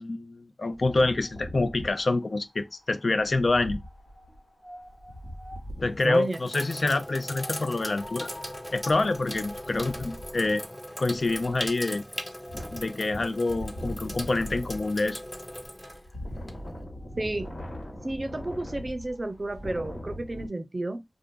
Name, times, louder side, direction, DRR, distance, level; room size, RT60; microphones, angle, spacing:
voice 1, 0.0-3.8 5.8-8.3 8.7-10.6 11.0-12.0 12.7-15.2, left 2 dB, 70° left, 0.3 m, -26 dB
Wind, 0.7-6.1 7.2-20.5, equal, 90° left, 1.4 m, -41 dB
Sink (filling or washing), 4.8-5.3 5.9-16.8, equal, 15° left, 0.6 m, -39 dB
voice 2, 6.0-6.4 17.2-17.5 18.0-21.0, right 2 dB, 45° right, 0.5 m, -31 dB
2.5 x 2.4 x 3.6 m
wide cardioid pair, 50°, 0 cm